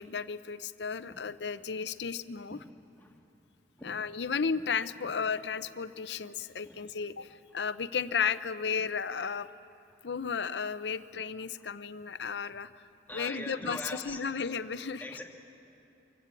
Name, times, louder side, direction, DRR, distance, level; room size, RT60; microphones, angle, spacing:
voice 1, 0.0-2.6 3.8-9.5 10.0-12.7 13.1-15.1, left 6 dB, 80° left, 13 dB, 0.6 m, -34 dB
voice 2, 13.1-14.2 15.0-15.2, left 1 dB, 10° left, 1 dB, 1.7 m, -41 dB
24.5 x 16.0 x 8.4 m, 2.8 s
head